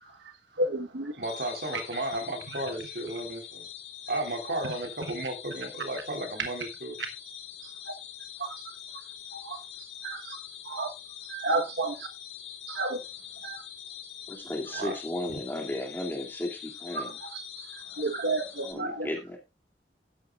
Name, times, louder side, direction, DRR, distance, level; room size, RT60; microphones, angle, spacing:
voice 1, 0.0-1.2 1.7-1.8 2.5-2.6 4.5-4.7 5.1-5.2 7.6-7.9 8.4-8.7 9.3-9.6 10.0-10.4 10.6-10.9 11.2-12.1 12.7-13.0 13.4-13.6 14.7-14.8 16.9-19.1, right 2 dB, 80° right, 5 dB, 1.2 m, -33 dB
sound 1, 1.2-18.7, left 9 dB, 80° left, 2.3 m, -44 dB
voice 2, 1.2-3.7 4.1-7.0 14.7-15.0, right 2 dB, 60° right, 3 dB, 3.8 m, -34 dB
voice 3, 14.3-17.1 18.6-19.4, left 1 dB, 10° left, 1 dB, 2.4 m, -34 dB
13.0 x 10.5 x 2.4 m, 0.24 s
head